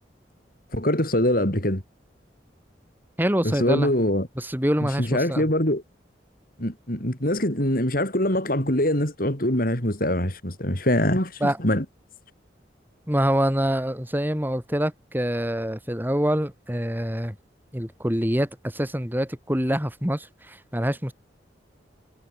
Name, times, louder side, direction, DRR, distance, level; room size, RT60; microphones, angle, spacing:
voice 1, 0.7-1.8 3.4-4.3 5.0-5.8 6.6-11.8, left 1 dB, 55° left, 6.1 m, -23 dB
voice 2, 3.2-3.9 4.4-5.5 11.4-11.6 13.1-17.3 17.7-21.1, equal, 10° right, 3.2 m, -25 dB
head